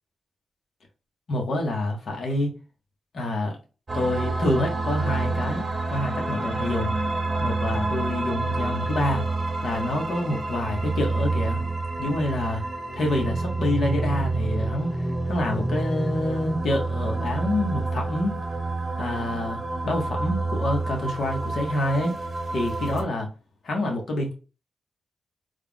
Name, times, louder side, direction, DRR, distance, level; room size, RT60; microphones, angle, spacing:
voice 1, 1.3-2.5 3.1-3.6 3.9-6.9 7.4-9.3 9.6-11.6 12.0-12.6 12.9-18.3 19.0-22.1 22.5-23.3 23.6-24.3, left 1 dB, 65° left, 1.3 m, -27 dB
sound 1, 3.9-23.0, right 2 dB, 30° right, 1.1 m, -28 dB
3.5 x 2.3 x 3.5 m
cardioid pair, 75°, 0 cm